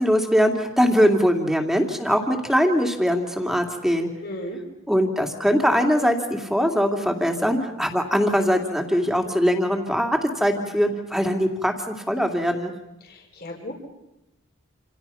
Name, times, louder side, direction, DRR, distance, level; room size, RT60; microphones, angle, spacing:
voice 1, 0.0-4.1 4.9-12.7, equal, ahead, 3 dB, 2.7 m, -21 dB
voice 2, 4.2-4.6 13.0-13.7, equal, 50° left, 1 dB, 4.5 m, -35 dB
28.5 x 28.0 x 5.8 m, 0.90 s
head